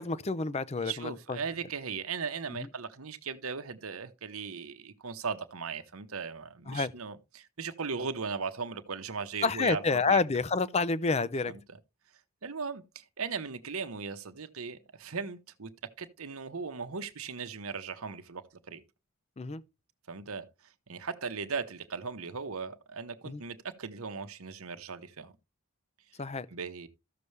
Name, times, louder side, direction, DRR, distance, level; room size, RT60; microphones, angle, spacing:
voice 1, 0.0-1.4 2.5-2.7 6.7-6.9 9.4-11.5 19.4-19.6 23.2-23.4 26.2-26.5, left 4 dB, 30° left, 0.5 m, -29 dB
voice 2, 0.8-10.2 11.5-11.6 12.4-18.8 20.1-20.5 20.9-25.3 26.5-26.9, right 5 dB, 75° right, 1.0 m, -38 dB
13.5 x 6.8 x 3.3 m
head